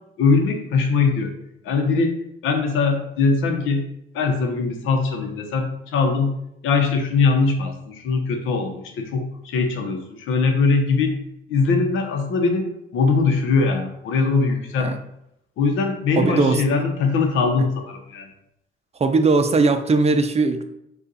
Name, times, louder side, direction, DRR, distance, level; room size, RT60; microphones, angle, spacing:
voice 1, 0.2-1.3 1.6-2.2 2.4-3.9 4.1-6.3 6.6-11.1 11.5-14.9 15.6-18.3, left 4 dB, 85° left, 5 dB, 0.8 m, -21 dB
voice 2, 16.2-16.6 19.0-20.6, right 3 dB, 30° right, 8 dB, 0.5 m, -19 dB
5.3 x 2.4 x 4.0 m, 0.80 s
cardioid pair, 90°, 20 cm